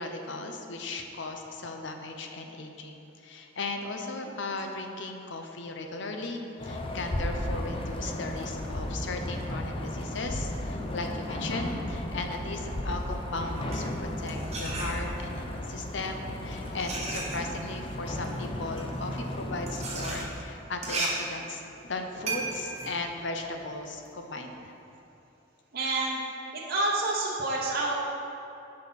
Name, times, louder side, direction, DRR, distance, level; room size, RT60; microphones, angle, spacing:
voice 1, 0.0-13.9 14.2-24.7, left 2 dB, 65° left, 4 dB, 0.8 m, -37 dB
sound 1, 6.6-20.3, left 1 dB, 30° left, 0.6 m, -35 dB
sound 2, 13.4-15.4 16.2-24.1, right 3 dB, 35° right, 1.2 m, -36 dB
voice 2, 25.7-26.2 26.5-27.9, right 2 dB, 55° right, -4 dB, 0.9 m, -28 dB
10.5 x 5.3 x 4.1 m, 2.9 s
head